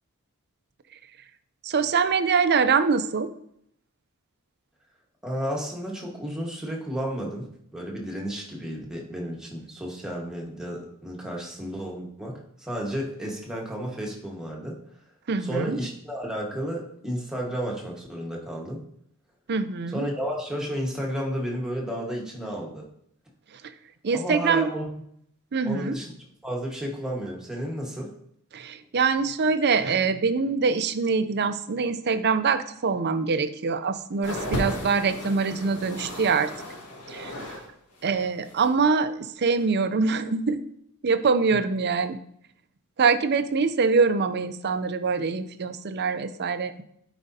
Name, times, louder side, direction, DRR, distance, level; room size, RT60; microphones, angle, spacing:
voice 1, 1.6-3.3 15.3-15.8 19.5-20.1 23.5-23.7 24.0-24.7 25.5-25.9 28.5-36.5 37.1-37.6 38.0-40.6 41.0-42.2 43.0-46.8, right 5 dB, 50° right, 11 dB, 0.5 m, -24 dB
voice 2, 5.2-14.8 15.4-18.9 19.9-22.9 24.1-24.9 25.6-26.1 26.4-28.1, equal, 5° right, -2 dB, 1.4 m, -32 dB
sound 1, 34.2-37.7 37.9-38.8 39.6-39.7, equal, 75° left, 1.8 m, -35 dB
12.0 x 5.0 x 2.8 m, 0.70 s
head